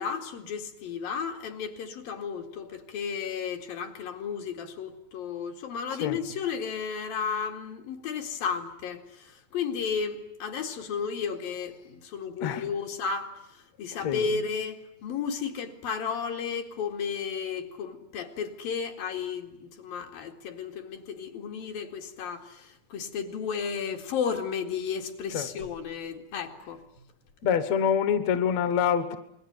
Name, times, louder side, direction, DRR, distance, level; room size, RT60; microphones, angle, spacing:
voice 1, 0.0-13.3 13.8-26.8, left 6 dB, 75° left, 3.9 m, -33 dB
voice 2, 13.9-14.2 25.3-25.5 27.4-29.2, left 8 dB, 60° left, 2.2 m, -26 dB
28.5 x 21.5 x 9.0 m
omnidirectional pair, 4.2 m